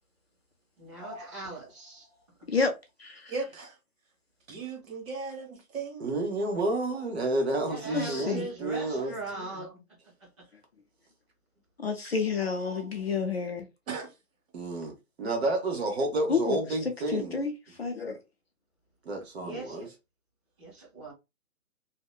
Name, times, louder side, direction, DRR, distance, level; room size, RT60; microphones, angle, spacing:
voice 1, 0.8-2.1 7.6-9.7 10.2-10.5 19.4-19.9 20.6-21.1, right 2 dB, 20° right, 1.2 m, -40 dB
voice 2, 2.5-3.3 7.3-7.5 7.9-8.5 11.8-13.7 16.3-16.6 17.1-17.5 17.8-18.2, left 5 dB, 45° left, 0.5 m, -30 dB
voice 3, 3.3-3.8 4.5-6.5 7.8-8.3 9.0-9.7 13.9-14.1, right 4 dB, 65° right, 1.3 m, -39 dB
voice 4, 6.0-9.1 14.5-17.4 19.0-19.9, right 2 dB, 45° right, 0.9 m, -30 dB
2.7 x 2.1 x 2.2 m
hypercardioid pair, 165°, 44 cm